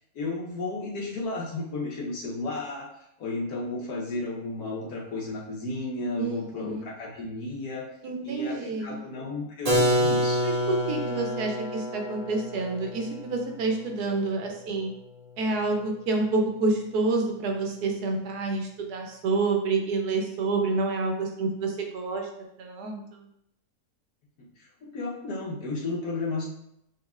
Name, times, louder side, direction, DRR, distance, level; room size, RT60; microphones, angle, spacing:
voice 1, 0.1-2.9 3.2-7.9 8.2-10.5 24.6-26.4, left 2 dB, 75° left, -3 dB, 1.5 m, -33 dB
voice 2, 6.2-6.8 8.0-9.0 10.4-14.9 15.4-22.3 22.6-23.3, right 3 dB, 90° right, 2 dB, 1.3 m, -28 dB
Keyboard (musical), 9.7-15.3, equal, 35° right, 0.7 m, -28 dB
6.1 x 2.8 x 2.4 m, 0.77 s
omnidirectional pair, 1.6 m